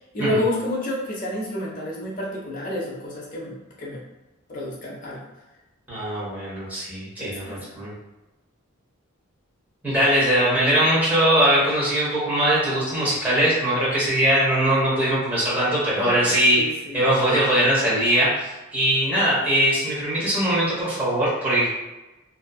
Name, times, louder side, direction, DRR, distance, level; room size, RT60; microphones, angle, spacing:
voice 1, 0.1-4.0 4.5-5.2 7.2-7.8 15.9-17.1, left 1 dB, 40° left, -4 dB, 0.7 m, -30 dB
voice 2, 5.9-7.9 9.8-16.6 16.9-21.7, right 1 dB, 10° right, -9 dB, 0.9 m, -21 dB
2.6 x 2.3 x 2.3 m, 1.0 s
head